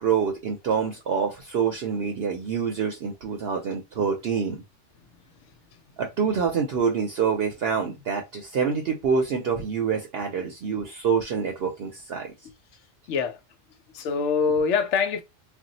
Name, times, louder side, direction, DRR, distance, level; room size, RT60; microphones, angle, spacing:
voice 1, 0.0-4.6 6.0-12.3, right 6 dB, 60° right, 0.7 m, -26 dB
voice 2, 13.1-13.4 13.9-15.2, left 5 dB, 70° left, 0.9 m, -24 dB
2.5 x 2.1 x 3.9 m
omnidirectional pair, 1.3 m